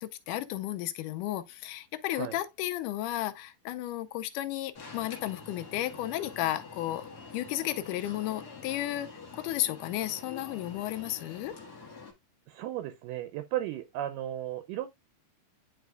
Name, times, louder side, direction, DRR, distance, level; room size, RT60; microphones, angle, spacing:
voice 1, 0.0-7.1 7.3-11.5, left 14 dB, 80° left, 2.0 m, -33 dB
Alarm, 4.7-12.1, left 4 dB, 55° left, 1.0 m, -46 dB
voice 2, 12.5-14.9, right 13 dB, 80° right, 2.0 m, -35 dB
10.5 x 4.1 x 2.2 m
omnidirectional pair, 4.1 m